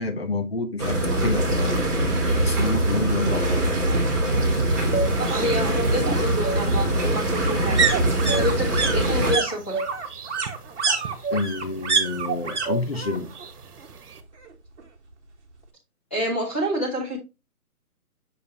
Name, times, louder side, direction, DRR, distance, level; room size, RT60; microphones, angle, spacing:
voice 1, 0.0-1.7 2.3-3.8 11.3-13.3, left 3 dB, 40° left, 1.0 m, -28 dB
sound 1, 0.8-9.3, right 1 dB, 15° right, 1.3 m, -23 dB
sound 2, 1.8-1.9 2.2-2.3 2.6-3.6 4.9-12.7 12.9-13.5 13.8-14.8 15.1-15.2, right 5 dB, 50° right, 1.5 m, -28 dB
sound 3, 4.4-14.2, right 4 dB, 75° right, 1.2 m, -34 dB
voice 2, 5.2-7.9 8.4-9.8 16.1-17.2, equal, 10° left, 1.1 m, -27 dB
6.6 x 5.3 x 2.8 m
hypercardioid pair, 175°, 45 cm